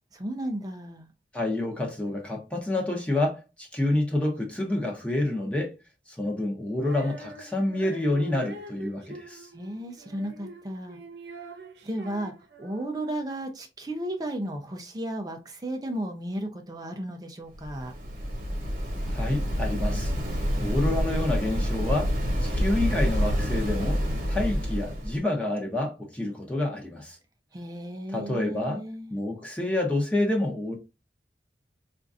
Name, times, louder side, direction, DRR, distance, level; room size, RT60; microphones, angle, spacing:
voice 1, 0.1-1.1 9.5-11.0 11.8-17.9 27.5-29.1, right 1 dB, 20° right, 0.5 m, -34 dB
voice 2, 1.3-5.7 6.1-9.5 19.0-20.1 20.6-22.1 22.4-27.2 28.1-28.8 29.1-30.8, left 1 dB, 5° left, 0.8 m, -28 dB
Female singing, 6.8-13.2, right 3 dB, 75° right, 0.7 m, -44 dB
Waves surf, 17.5-25.2, equal, 50° right, 1.1 m, -27 dB
4.4 x 2.4 x 2.5 m
head